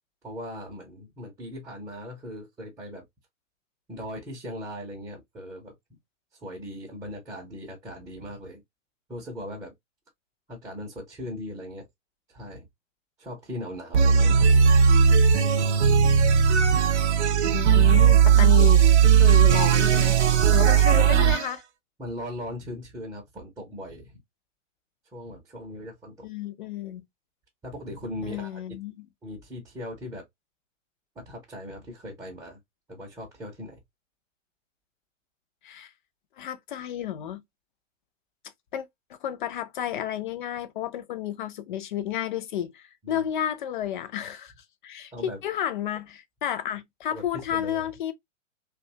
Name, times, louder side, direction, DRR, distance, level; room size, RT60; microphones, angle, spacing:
voice 1, 0.2-3.0 3.9-5.7 6.3-8.6 9.1-9.7 10.5-11.9 12.3-12.7 13.2-14.5 15.3-15.7 20.6-21.3 22.0-24.2 25.1-26.3 27.6-28.6 29.2-30.2 31.2-32.6 32.9-33.8 43.0-43.2 45.1-45.4 47.1-47.9, left 1 dB, 10° right, 0.6 m, -39 dB
sound 1, 13.9-21.5, right 7 dB, 60° right, 0.6 m, -18 dB
voice 2, 17.4-18.9 19.2-20.2 20.5-21.6 26.2-27.0 28.2-29.1 35.6-35.9 36.4-37.4 38.7-44.5 44.8-48.1, left 10 dB, 40° left, 0.5 m, -31 dB
2.6 x 2.3 x 2.6 m
figure-of-eight pair, 110°, 38 cm